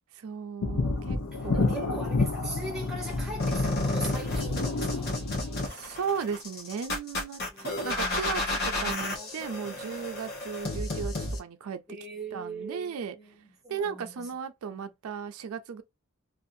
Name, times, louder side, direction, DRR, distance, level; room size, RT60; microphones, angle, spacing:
voice 1, 0.1-2.2 5.6-11.8 12.3-13.1 13.7-15.8, right 6 dB, 85° right, 0.4 m, -36 dB
sound 1, 0.6-5.7, left 3 dB, 80° left, 0.7 m, -30 dB
voice 2, 1.3-5.2 7.5-8.3 8.7-10.0 10.3-10.4 11.9-14.3, right 2 dB, ahead, 1.0 m, -41 dB
sound 2, 3.4-11.4, left 2 dB, 45° left, 0.8 m, -31 dB
2.6 x 2.4 x 2.5 m
head